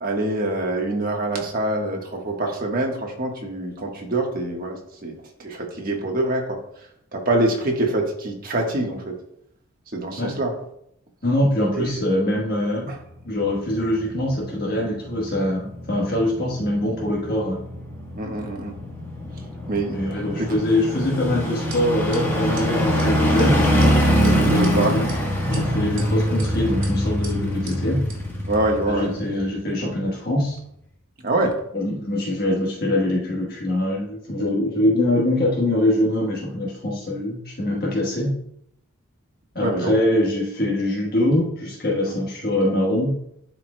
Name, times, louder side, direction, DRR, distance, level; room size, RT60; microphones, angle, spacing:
voice 1, 0.0-6.6 7.1-9.0 9.9-10.5 11.7-12.0 12.9-13.0 18.1-18.7 19.7-20.0 24.5-25.0 28.5-29.1 31.2-31.6 39.6-39.9 42.1-42.2, right 2 dB, 40° right, 0 dB, 1.3 m, -25 dB
voice 2, 11.2-12.9 13.2-17.6 19.9-23.6 24.2-25.1 25.5-28.0 28.9-30.6 31.7-38.3 39.5-43.1, left 1 dB, 45° left, -4 dB, 1.3 m, -23 dB
sound 1, 13.2-29.7 30.1-30.2, equal, 10° left, 1.3 m, -24 dB
sound 2, 21.7-21.8 22.1-22.2 22.6-22.7 23.0-23.1 23.4-23.5 23.8-23.9 24.2-24.7 25.1-25.2 25.5-26.1 26.4-26.5 26.8-26.9 27.2-27.3 27.7-27.8 28.1-28.2, right 4 dB, 60° right, 2.3 m, -38 dB
11.5 x 4.8 x 2.2 m, 0.74 s
head